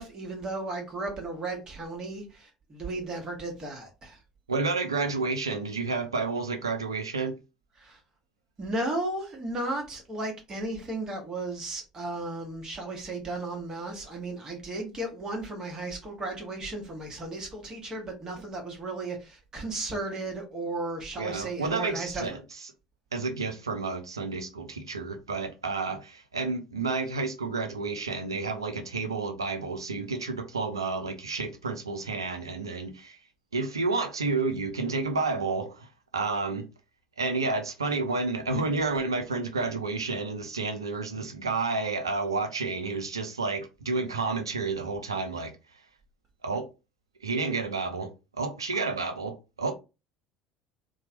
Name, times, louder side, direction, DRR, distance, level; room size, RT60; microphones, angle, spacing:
voice 1, 0.0-4.2 7.8-8.0 8.6-22.4, right 2 dB, 30° right, 1.3 m, -35 dB
voice 2, 4.5-7.3 21.2-22.4 23.1-33.2 33.5-35.9 36.1-36.6 37.2-45.5 46.4-46.7 47.2-49.7, right 3 dB, 85° right, 0.5 m, -30 dB
2.9 x 2.2 x 2.8 m
figure-of-eight pair, 60°, 2 cm